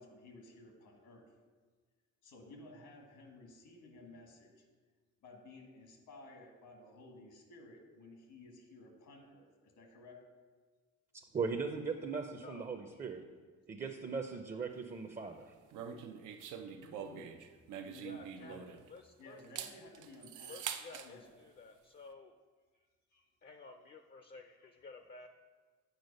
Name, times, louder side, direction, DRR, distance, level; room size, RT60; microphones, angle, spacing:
voice 1, 0.0-1.3 2.2-4.7 5.2-10.3 12.8-13.0 16.7-17.4 17.8-18.7 19.2-21.3 22.0-22.2 22.7-23.3 24.4-25.3, left 2 dB, 80° left, 2 dB, 1.6 m, -56 dB
voice 2, 11.3-13.2 13.7-15.5, right 5 dB, 25° right, 5 dB, 0.6 m, -38 dB
voice 3, 12.4-12.7 18.0-18.6 18.9-19.4 20.4-22.3 23.4-25.3, left 4 dB, 35° left, 6 dB, 0.5 m, -53 dB
sound 1, 15.7-19.0 19.4-21.1, right 8 dB, 85° right, 0.6 m, -44 dB
8.1 x 4.7 x 5.2 m, 1.4 s
cardioid pair, 90°, 30 cm